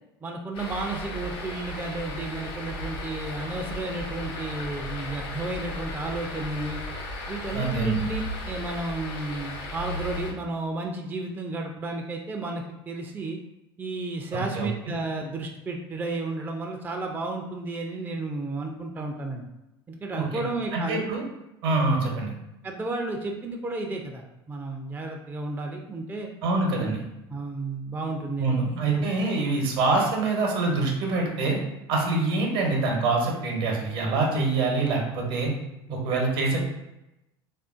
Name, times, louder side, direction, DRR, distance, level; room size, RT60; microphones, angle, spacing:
voice 1, 0.2-6.8 7.3-13.4 13.8-19.4 19.9-21.0 22.6-26.3 26.8-26.9 27.3-29.1 35.9-36.0, right 2 dB, 15° right, 2 dB, 0.4 m, -32 dB
sound 1, 0.5-10.3, left 1 dB, 55° left, 0.9 m, -35 dB
voice 2, 7.5-8.0 14.5-14.7 20.1-20.4 20.7-21.2 21.6-22.3 26.4-27.0 28.4-31.6 31.9-35.5 35.9-36.6, right 3 dB, 65° right, 0 dB, 0.9 m, -25 dB
3.4 x 2.5 x 2.4 m, 0.91 s
hypercardioid pair, 75°, 14 cm